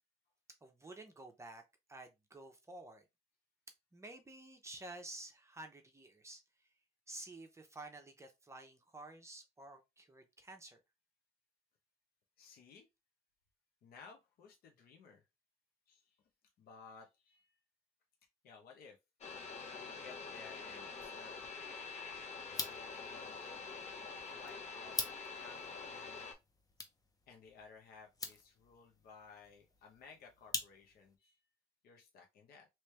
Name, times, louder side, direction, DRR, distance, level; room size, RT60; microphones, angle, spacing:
voice 1, 0.6-1.6 1.9-3.0 3.9-6.4 7.1-10.8, right 2 dB, 15° right, 0.8 m, -51 dB
voice 2, 12.4-12.9 13.8-15.2 15.9-16.3 16.6-17.6 18.4-19.0 19.7-21.6 22.5-23.7 24.3-25.6 25.9-26.3 27.3-31.5 31.8-32.7, left 5 dB, 65° left, 0.9 m, -58 dB
sound 1, 19.2-26.3, left 4 dB, 40° left, 1.0 m, -46 dB
sound 2, 22.4-31.2, left 3 dB, 20° left, 0.7 m, -46 dB
3.2 x 3.1 x 3.2 m
cardioid pair, 110°, 17 cm